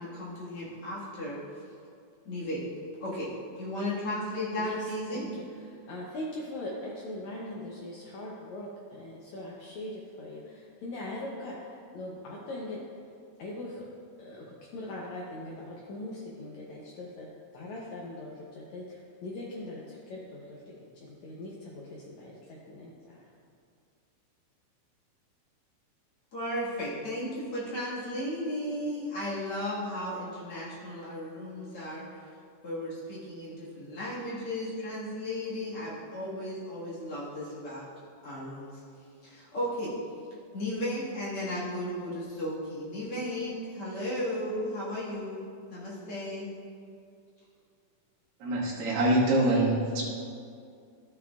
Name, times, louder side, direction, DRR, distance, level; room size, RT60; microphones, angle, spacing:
voice 1, 0.0-1.6 2.2-2.6 3.0-5.3 26.3-32.2 32.6-37.9 38.2-38.8 39.2-40.0 40.5-45.4 45.7-46.5, left 1 dB, 45° left, -8 dB, 2.2 m, -35 dB
voice 2, 5.1-12.8 13.4-13.9 14.2-17.3 17.5-20.8 21.0-22.9, left 1 dB, 85° left, -4 dB, 1.6 m, -41 dB
voice 3, 48.4-50.1, right 1 dB, 70° right, -6 dB, 3.3 m, -25 dB
13.0 x 7.7 x 2.4 m, 2.3 s
omnidirectional pair, 4.4 m